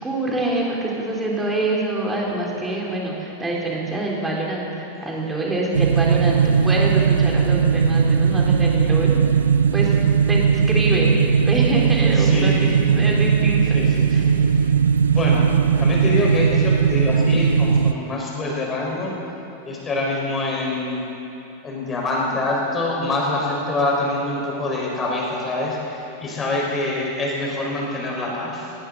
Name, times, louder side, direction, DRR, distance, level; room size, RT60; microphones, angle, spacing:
voice 1, 0.0-9.3 9.7-10.0 10.3-11.2 11.5-13.8 14.1-14.2, right 2 dB, 10° right, -3 dB, 3.7 m, -25 dB
sound 1, 5.7-17.9, right 6 dB, 70° right, 0.5 m, -18 dB
voice 2, 12.2-12.7 13.7-14.7 15.1-15.5 15.8-19.1 19.6-21.1 21.6-28.7, left 2 dB, 20° left, -3 dB, 4.8 m, -25 dB
19.0 x 18.5 x 4.0 m, 2.9 s
figure-of-eight pair, 90°, 0 cm